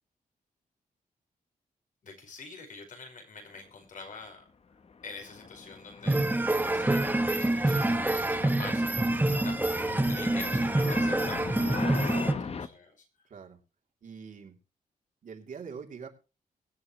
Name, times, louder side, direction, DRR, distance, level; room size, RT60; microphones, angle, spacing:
voice 1, 2.0-4.4 5.0-6.3 6.6-9.6 10.1-13.1, left 4 dB, 65° left, 4 dB, 5.2 m, -46 dB
sound 1, 4.8-12.7, left 5 dB, 45° left, 1.0 m, -40 dB
sound 2, 6.1-12.3, right 2 dB, 10° right, 1.3 m, -26 dB
voice 2, 9.8-10.3 12.0-12.4 13.3-13.6 14.0-14.6 15.2-16.1, right 6 dB, 65° right, 2 dB, 3.2 m, -45 dB
23.0 x 8.9 x 3.2 m, 0.31 s
cardioid pair, 105°, 14 cm